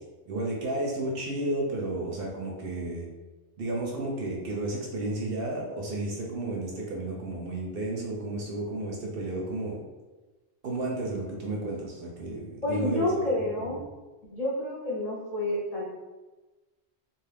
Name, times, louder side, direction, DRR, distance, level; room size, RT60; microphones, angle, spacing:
voice 1, 0.3-3.0 3.6-9.8 10.6-13.5, right 2 dB, 65° right, -2 dB, 0.7 m, -32 dB
voice 2, 12.6-13.8 14.3-15.8, left 1 dB, 40° left, -7 dB, 0.8 m, -29 dB
2.4 x 2.4 x 3.3 m, 1.2 s
omnidirectional pair, 1.1 m